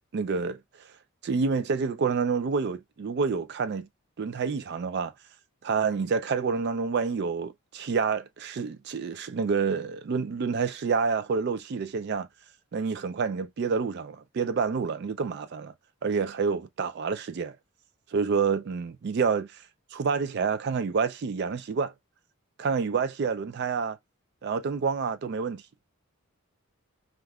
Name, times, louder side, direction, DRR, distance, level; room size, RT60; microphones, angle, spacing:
voice 1, 0.1-0.6 1.2-3.9 4.2-5.1 5.6-12.3 12.7-15.7 16.0-17.6 18.1-19.6 19.9-21.9 22.6-24.0 24.4-25.6, right 5 dB, 50° right, 0.3 m, -28 dB
3.4 x 2.4 x 2.3 m
head